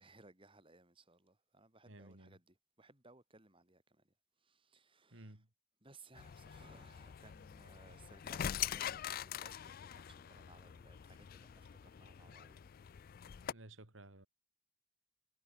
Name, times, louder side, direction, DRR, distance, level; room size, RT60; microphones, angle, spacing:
voice 1, 0.0-4.1 4.4-5.4 5.8-12.6, right 3 dB, 25° right, 4.1 m, -63 dB
voice 2, 1.9-2.4 5.1-5.5 13.4-14.3, right 1 dB, 85° right, 3.1 m, -55 dB
sound 1, 6.2-13.5, left 10 dB, 50° left, 0.4 m, -44 dB
head